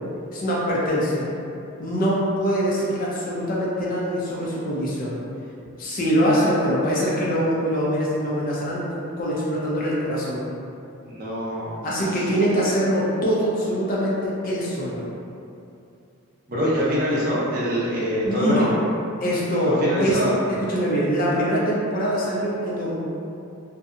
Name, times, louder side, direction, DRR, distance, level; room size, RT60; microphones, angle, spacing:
voice 1, 0.3-1.3 1.8-5.2 5.8-10.5 11.8-15.0 18.2-18.7 19.2-20.2 20.5-23.0, equal, 40° left, -6 dB, 0.4 m, -23 dB
voice 2, 11.0-11.7 12.1-12.2 16.5-18.6 19.7-20.3, equal, 40° right, -7 dB, 0.5 m, -24 dB
2.6 x 2.2 x 2.5 m, 2.6 s
head